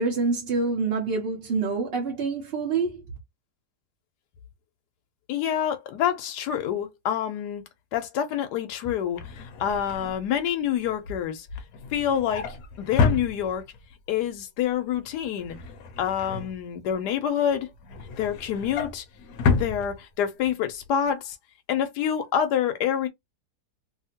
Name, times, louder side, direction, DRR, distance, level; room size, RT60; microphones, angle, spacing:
voice 1, 0.0-3.0, right 4 dB, 50° right, 0.8 m, -26 dB
voice 2, 5.3-7.6 7.9-11.5 11.9-13.6 14.1-15.6 16.0-17.7 18.2-19.0 19.5-21.4 21.7-23.1, left 9 dB, 90° left, 1.2 m, -27 dB
Drawer open or close, 8.9-13.9 14.3-14.6 14.9-17.1 17.5-20.5 20.9-21.1 21.3-21.4, left 4 dB, 70° left, 1.0 m, -30 dB
2.8 x 2.7 x 2.8 m
omnidirectional pair, 1.7 m